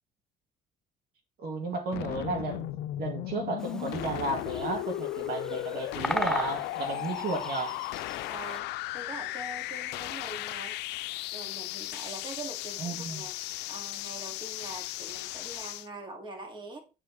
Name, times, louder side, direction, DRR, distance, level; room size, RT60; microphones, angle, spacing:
voice 1, 1.4-2.7 3.0-7.8 12.8-13.2, right 3 dB, 65° right, 2.2 m, -33 dB
sound 1, 1.9-15.9, left 17 dB, 85° left, 0.4 m, -36 dB
Bird vocalization bird call bird song, 3.6-8.6, left 1 dB, 5° left, 0.4 m, -38 dB
voice 2, 6.8-7.2 8.3-8.7 8.9-10.8 11.3-13.4 13.7-16.8, right 2 dB, 30° right, 2.3 m, -43 dB
9.0 x 4.7 x 4.1 m
cardioid pair, 110°, 17 cm